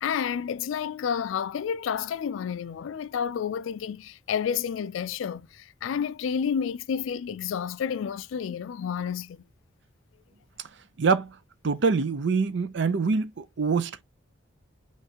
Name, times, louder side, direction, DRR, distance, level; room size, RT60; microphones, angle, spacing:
voice 1, 0.0-9.4, left 7 dB, 85° left, 0.3 m, -30 dB
voice 2, 11.0-11.3 11.6-14.0, right 4 dB, 65° right, 0.5 m, -25 dB
5.6 x 3.1 x 2.8 m
head